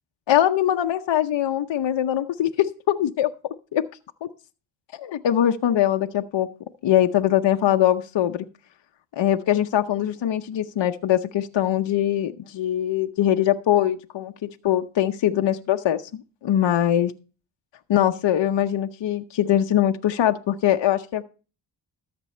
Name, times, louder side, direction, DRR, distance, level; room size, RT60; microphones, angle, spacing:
voice 1, 0.3-3.3 3.7-3.8 4.2-4.3 4.9-6.5 6.8-8.5 9.2-17.1 17.9-21.2, left 11 dB, 65° left, 6 dB, 0.7 m, -22 dB
13.5 x 6.1 x 4.3 m, 0.35 s
cardioid pair, 55°, 47 cm